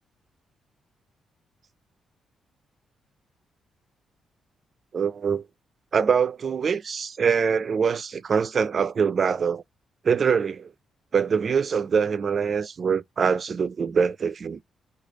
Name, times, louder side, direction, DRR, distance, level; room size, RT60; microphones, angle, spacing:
voice 1, 4.9-5.4 5.9-9.6 10.0-10.7 11.1-14.6, right 6 dB, 40° right, 0.4 m, -24 dB
3.3 x 2.3 x 3.6 m
cardioid pair, 130°, 0 cm